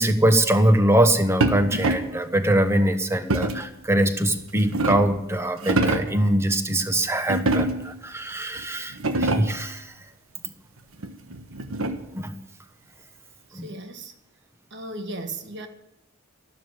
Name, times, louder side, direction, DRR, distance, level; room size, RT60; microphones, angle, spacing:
voice 1, 0.0-9.9 10.4-10.5 12.1-12.3 13.5-13.7, right 1 dB, 15° right, 1.1 m, -22 dB
sound 1, 1.4-2.2 3.3-3.7 4.4-5.2 5.6-6.2 7.3-8.0 8.6-8.7 8.9-9.7 11.0-12.2, right 2 dB, 80° right, 1.3 m, -25 dB
voice 2, 13.5-14.1 14.7-15.7, right 2 dB, 55° right, 1.4 m, -36 dB
12.5 x 12.5 x 7.8 m
head